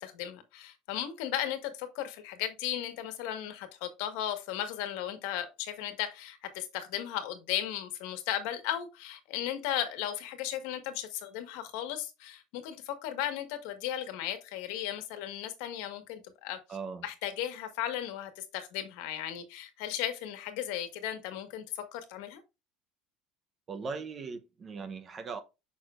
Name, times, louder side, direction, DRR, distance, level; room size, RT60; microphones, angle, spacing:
voice 1, 0.0-16.6 17.0-22.4, left 11 dB, 65° left, 1.5 m, -36 dB
voice 2, 16.7-17.1 23.7-25.4, right 5 dB, 20° right, 0.8 m, -39 dB
7.0 x 6.1 x 2.5 m
cardioid pair, 170°, 0 cm